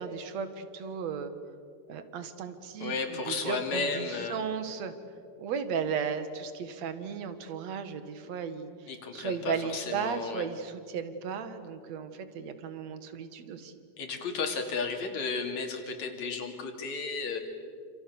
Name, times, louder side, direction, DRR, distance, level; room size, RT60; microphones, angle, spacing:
voice 1, 0.0-1.3 1.9-4.9 5.4-13.7, right 6 dB, 60° right, 10 dB, 2.7 m, -35 dB
voice 2, 2.8-4.4 8.9-10.4 14.0-17.4, left 4 dB, 65° left, 4 dB, 3.9 m, -33 dB
29.0 x 28.0 x 7.0 m, 2.4 s
omnidirectional pair, 3.5 m